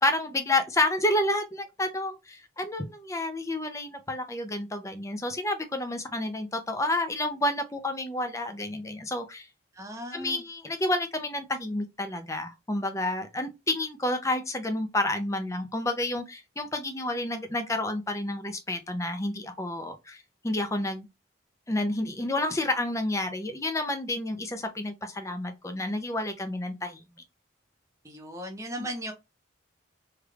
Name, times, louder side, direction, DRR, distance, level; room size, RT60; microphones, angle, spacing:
voice 1, 0.0-9.5 10.1-21.1 21.7-27.0, left 1 dB, 15° left, 0.5 m, -30 dB
voice 2, 9.8-10.4 28.0-29.1, equal, 15° right, 0.8 m, -37 dB
3.3 x 3.1 x 2.3 m
head